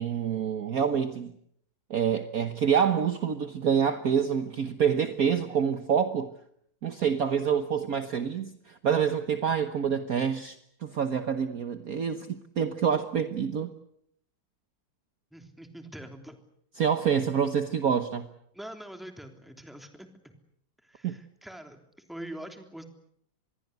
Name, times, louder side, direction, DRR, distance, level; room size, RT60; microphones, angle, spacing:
voice 1, 0.0-1.3 1.9-6.3 6.8-10.6 10.8-13.7 16.8-18.3 21.0-21.2, right 7 dB, 50° right, 1.5 m, -27 dB
voice 2, 15.3-16.4 18.5-20.3 20.8-21.8 22.1-22.8, right 1 dB, ahead, 3.2 m, -44 dB
26.5 x 21.5 x 8.2 m
omnidirectional pair, 2.1 m